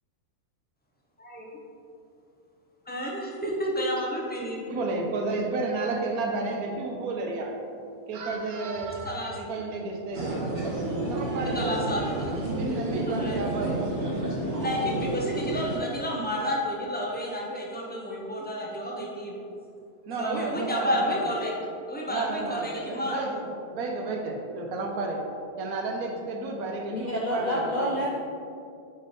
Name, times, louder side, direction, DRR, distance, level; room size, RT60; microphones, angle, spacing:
voice 1, 1.2-1.5 2.9-4.6 9.0-9.3 11.5-12.3 13.1-13.4 14.6-19.4 20.2-21.5 21.9-23.2, equal, 10° left, -3 dB, 0.5 m, -30 dB
voice 2, 4.7-7.6 8.1-10.4 11.1-11.9 12.6-13.9 20.1-21.3 22.1-25.3 25.6-27.9, right 3 dB, 70° right, 1 dB, 1.3 m, -32 dB
sound 1, 10.1-15.8, right 2 dB, 45° right, 1.1 m, -30 dB
voice 3, 26.9-28.2, left 1 dB, 65° left, -4 dB, 0.4 m, -28 dB
5.3 x 5.0 x 4.1 m, 2.4 s
omnidirectional pair, 1.6 m